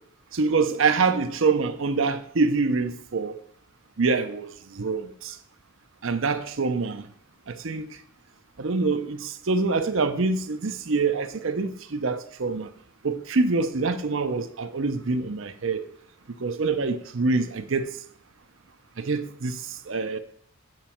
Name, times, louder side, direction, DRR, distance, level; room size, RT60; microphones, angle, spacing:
voice 1, 0.3-3.4 4.0-4.5 4.7-5.3 6.0-7.0 7.5-8.0 8.6-12.7 13.0-15.8 16.4-17.9 19.0-19.6 19.9-20.2, right 4 dB, 60° right, 0.7 m, -25 dB
9.0 x 6.1 x 4.4 m
head